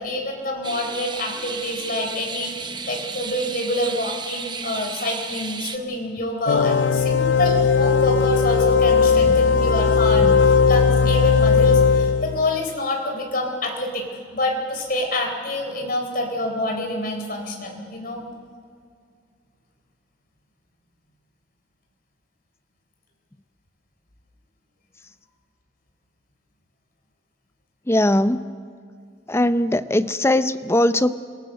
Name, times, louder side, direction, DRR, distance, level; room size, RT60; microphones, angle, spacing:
voice 1, 0.0-14.0 14.3-18.2, left 1 dB, 50° left, 2 dB, 4.0 m, -27 dB
sound 1, 0.6-5.8, right 5 dB, 25° right, 0.9 m, -33 dB
sound 2, 6.5-12.6, left 5 dB, 75° left, 0.5 m, -17 dB
voice 2, 9.2-9.6 10.1-10.4 27.9-28.5 29.3-31.2, left 1 dB, 15° left, 12 dB, 0.6 m, -21 dB
26.0 x 18.5 x 6.6 m, 2.2 s
head